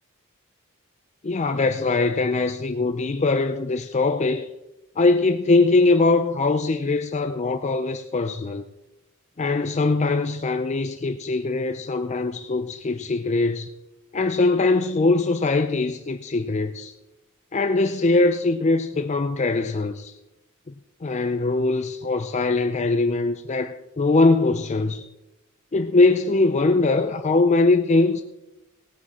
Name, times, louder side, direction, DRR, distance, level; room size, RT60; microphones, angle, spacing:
voice 1, 1.2-4.5 5.0-8.6 9.4-13.7 14.1-16.9 17.5-20.1 20.7-20.8 21.0-25.1 25.7-28.2, left 3 dB, 30° left, 0.5 m, -21 dB
17.0 x 9.4 x 4.2 m
head